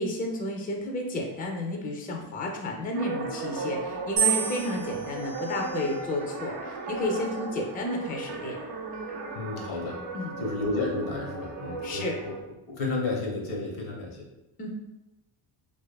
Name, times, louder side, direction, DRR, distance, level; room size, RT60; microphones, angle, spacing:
voice 1, 0.0-8.6 10.1-10.3 11.8-12.2 14.6-14.7, left 1 dB, 20° left, 2 dB, 0.4 m, -31 dB
sound 1, 2.9-12.4, right 3 dB, 55° right, 0.6 m, -36 dB
sound 2, 4.2-6.4 7.2-7.7, right 8 dB, 85° right, 0.8 m, -31 dB
voice 2, 9.3-10.0 10.4-12.3 12.7-14.3, left 3 dB, 85° left, -1 dB, 0.8 m, -32 dB
2.6 x 2.3 x 2.2 m, 0.98 s
cardioid pair, 75°, 47 cm